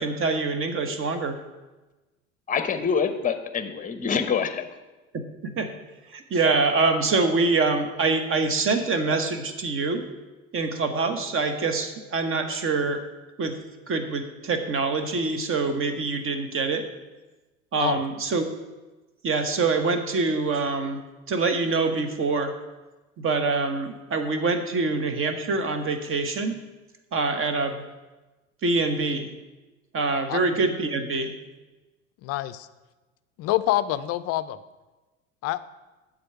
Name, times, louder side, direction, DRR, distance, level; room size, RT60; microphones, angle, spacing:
voice 1, 0.0-1.3 5.4-5.7 6.1-10.0 10.5-13.0 13.4-13.6 13.9-16.9 17.7-18.4 19.2-21.0 21.3-22.5 23.2-26.6 27.1-27.8 28.6-29.3 29.9-31.3, right 3 dB, 30° right, 7 dB, 1.2 m, -25 dB
voice 2, 2.5-4.7, left 6 dB, 20° left, 10 dB, 0.9 m, -26 dB
voice 3, 32.2-32.7 33.4-34.6 35.4-35.6, left 15 dB, 40° left, 15 dB, 0.5 m, -26 dB
11.0 x 3.9 x 5.7 m, 1.2 s
figure-of-eight pair, 70°, 40 cm